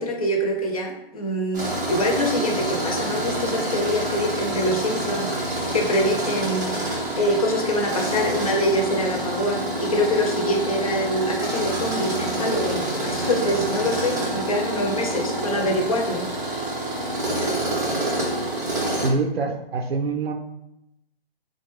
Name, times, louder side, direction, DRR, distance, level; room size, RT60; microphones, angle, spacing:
voice 1, 0.0-16.7 17.3-17.5 18.8-18.9, left 1 dB, 35° left, 2 dB, 0.5 m, -25 dB
Tools, 1.5-19.1, right 1 dB, 20° right, 0.5 m, -27 dB
voice 2, 19.0-20.3, right 3 dB, 75° right, 5 dB, 0.5 m, -25 dB
3.7 x 2.2 x 3.1 m, 0.84 s
hypercardioid pair, 160°, 31 cm